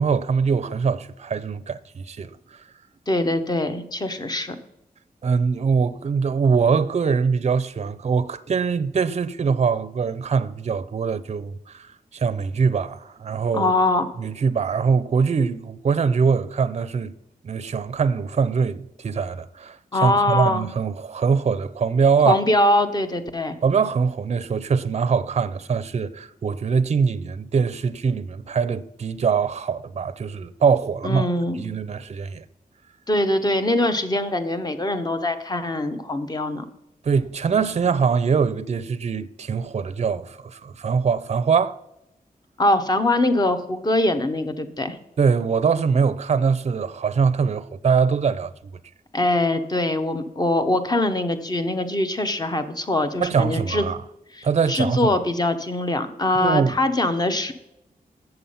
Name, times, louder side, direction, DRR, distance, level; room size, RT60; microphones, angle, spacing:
voice 1, 0.0-2.4 5.2-13.7 14.2-17.1 17.4-22.4 23.6-31.3 31.6-32.4 37.0-41.8 45.2-48.5 53.2-54.0 54.4-55.1 56.3-56.8, right 5 dB, 45° right, 0.5 m, -23 dB
voice 2, 3.1-4.5 13.5-14.1 19.9-20.7 22.3-23.5 31.0-31.6 33.1-36.6 42.6-45.0 49.1-53.9 54.3-57.5, left 1 dB, 25° left, 0.9 m, -22 dB
7.9 x 7.0 x 5.5 m
wide cardioid pair, 110°, 16 cm